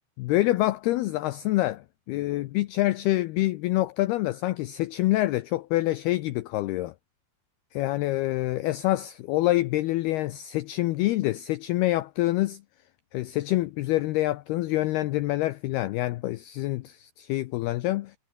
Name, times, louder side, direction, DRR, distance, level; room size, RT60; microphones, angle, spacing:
voice 1, 0.2-6.9 7.7-12.6 13.1-18.2, left 17 dB, 90° left, 2.2 m, -26 dB
omnidirectional pair, 5.5 m